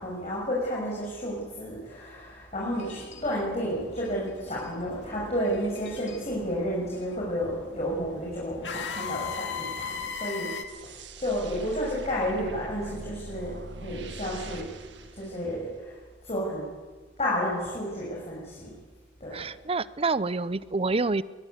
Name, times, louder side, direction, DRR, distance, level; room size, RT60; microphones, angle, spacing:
voice 1, 0.0-14.7 15.1-16.0 16.2-16.7 17.2-18.8 19.2-19.4, equal, 35° left, -4 dB, 6.4 m, -31 dB
sound 1, 2.7-10.6, left 5 dB, 80° left, 2.2 m, -39 dB
sound 2, 10.7-16.0, right 2 dB, 75° right, 2.0 m, -43 dB
voice 2, 19.3-21.2, right 3 dB, 30° right, 17 dB, 0.7 m, -27 dB
22.0 x 21.0 x 9.5 m, 1.4 s
head